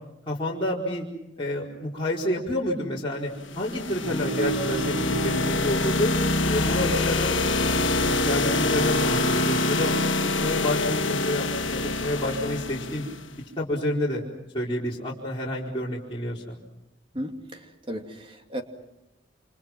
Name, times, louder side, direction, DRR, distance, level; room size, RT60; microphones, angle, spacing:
voice 1, 0.3-1.0 1.4-3.3 3.6-6.1 6.5-7.3 8.0-9.9 10.4-13.0 13.6-14.2 14.5-16.6, left 1 dB, 25° left, -6 dB, 4.6 m, -29 dB
sound 1, 3.4-13.3, left 2 dB, 90° left, 1.5 m, -26 dB
sound 2, 4.0-9.3, right 1 dB, ahead, 5.9 m, -32 dB
voice 2, 17.1-18.6, equal, 30° right, 4 dB, 2.6 m, -35 dB
29.0 x 28.0 x 6.1 m, 0.90 s
head